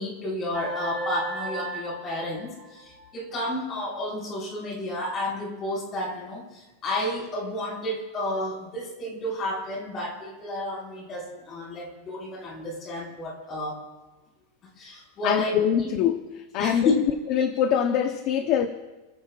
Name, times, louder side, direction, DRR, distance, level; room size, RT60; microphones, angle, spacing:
voice 1, 0.0-13.8 14.8-15.9 16.6-17.0, left 1 dB, 25° left, 5.2 m, -31 dB
sound 1, 0.5-3.2, right 2 dB, 15° right, 1.9 m, -35 dB
voice 2, 15.2-17.0 17.3-18.7, left 9 dB, 40° left, 0.9 m, -24 dB
29.5 x 15.0 x 2.5 m
supercardioid pair, 165°, 0 cm